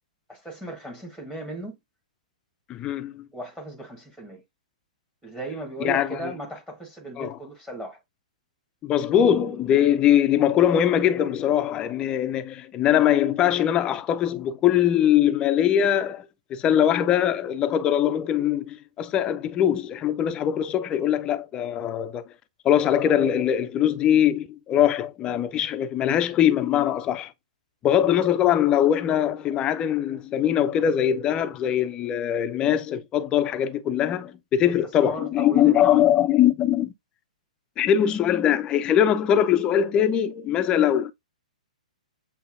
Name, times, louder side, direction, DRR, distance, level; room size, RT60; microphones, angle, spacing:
voice 1, 0.3-1.8 3.3-4.4 5.2-8.0 13.9-14.0 34.5-34.7 35.0-36.1, right 2 dB, 5° right, 1.1 m, -36 dB
voice 2, 2.7-3.3 5.8-6.3 7.2-7.4 8.8-22.2 22.6-27.3 27.8-36.9 37.8-41.1, left 10 dB, 20° left, 0.4 m, -22 dB
7.8 x 2.7 x 2.5 m
figure-of-eight pair, 115°, 4 cm